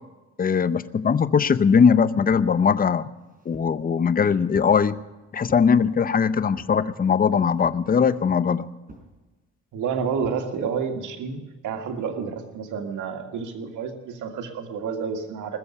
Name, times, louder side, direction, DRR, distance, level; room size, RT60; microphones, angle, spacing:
voice 1, 0.4-3.1 3.5-5.0 5.3-8.7, left 6 dB, 30° left, 15 dB, 0.6 m, -20 dB
sound 1, 2.3-2.6 3.1-3.8 4.5-4.8 5.5-5.7 6.6-6.9 7.6-7.9 8.9-9.1 10.2-10.4, right 2 dB, 30° right, 4.1 m, -46 dB
voice 2, 9.7-11.4 11.6-15.6, right 6 dB, 80° right, 4 dB, 1.9 m, -29 dB
20.5 x 7.0 x 9.8 m, 1.1 s
cardioid pair, 90°, 30 cm